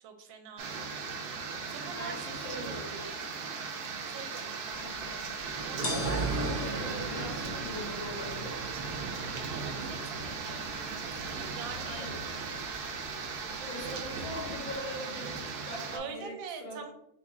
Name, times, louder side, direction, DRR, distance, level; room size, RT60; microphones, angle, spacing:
voice 1, 0.0-0.9 1.7-2.8 3.3-3.6 4.0-4.5 5.6-5.9 9.5-10.7 11.1-12.1 13.5-14.0 15.9-16.9, right 6 dB, 85° right, 6 dB, 1.3 m, -44 dB
sound 1, 0.6-16.0, right 4 dB, 70° right, 1.0 m, -36 dB
voice 2, 1.9-3.1 4.7-8.6 11.8-12.2 13.6-16.3 16.6-16.8, left 1 dB, 90° left, -2 dB, 2.1 m, -42 dB
sound 2, 4.7-14.8, left 2 dB, 60° left, 0.6 m, -46 dB
4.0 x 2.3 x 4.1 m, 0.79 s
omnidirectional pair, 2.1 m